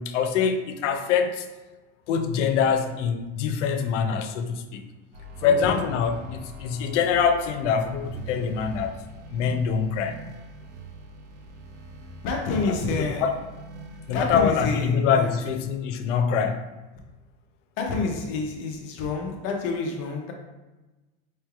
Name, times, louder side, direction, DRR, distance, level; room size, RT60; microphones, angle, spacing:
voice 1, 0.0-1.5 2.1-4.8 5.4-9.0 9.3-10.2 12.7-13.4 14.1-16.6, left 6 dB, 80° left, 8 dB, 0.6 m, -24 dB
sound 1, 5.1-14.3, right 2 dB, 90° right, 0.7 m, -42 dB
voice 2, 5.4-5.7 12.2-13.3 14.1-15.3 17.8-20.3, left 4 dB, 35° left, 2 dB, 0.4 m, -28 dB
4.7 x 3.1 x 2.3 m, 1.1 s
supercardioid pair, 160°, 36 cm